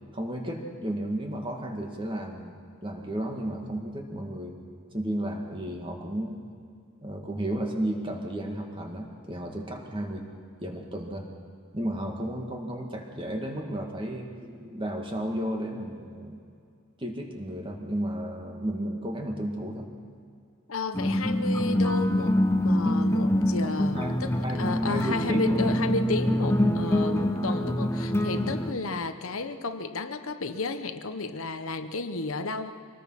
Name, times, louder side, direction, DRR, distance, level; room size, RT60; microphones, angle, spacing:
voice 1, 0.1-4.5 4.9-6.4 7.0-10.3 10.6-11.2 11.7-16.4 17.0-19.9 23.6-24.2 24.4-25.4 28.4-28.6, right 1 dB, 25° right, 2 dB, 2.2 m, -33 dB
voice 2, 20.7-32.7, left 3 dB, 70° left, 8 dB, 1.0 m, -32 dB
sound 1, 20.9-28.7, left 1 dB, 10° left, 0.7 m, -25 dB
24.5 x 19.0 x 5.9 m, 2.3 s
head